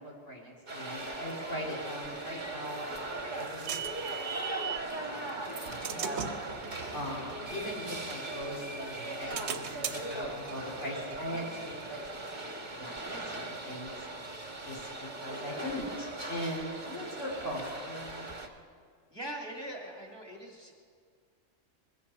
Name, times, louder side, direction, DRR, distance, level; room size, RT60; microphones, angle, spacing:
voice 1, 0.0-4.0 4.3-4.8 5.1-6.2 6.9-12.0 12.8-13.9 14.6-18.3, equal, 65° left, -2 dB, 3.5 m, -40 dB
sound 1, 0.7-18.5, right 2 dB, 40° right, 1.3 m, -39 dB
voice 2, 1.2-1.5 6.0-6.3 10.1-10.4 15.3-15.7 19.1-20.7, right 1 dB, 20° right, -1 dB, 1.8 m, -43 dB
sound 2, 2.7-4.9 5.4-8.5 9.0-12.4, right 7 dB, 60° right, 1.0 m, -41 dB
sound 3, 3.3-17.2, equal, 90° left, 5.3 m, -58 dB
21.0 x 15.5 x 4.3 m, 2.1 s
omnidirectional pair, 1.3 m